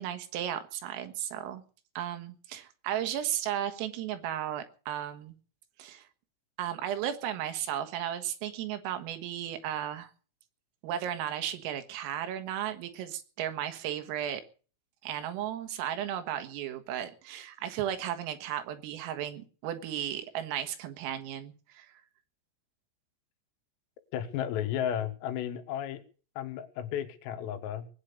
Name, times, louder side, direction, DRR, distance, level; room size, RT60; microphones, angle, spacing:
voice 1, 0.0-1.6 2.0-5.4 5.8-6.1 6.6-10.1 10.8-14.4 15.0-22.0, right 10 dB, 85° right, 9 dB, 4.0 m, -35 dB
voice 2, 24.1-26.0 26.4-27.9, left 10 dB, 80° left, 7 dB, 4.0 m, -33 dB
20.5 x 8.9 x 6.6 m, 0.40 s
omnidirectional pair, 6.0 m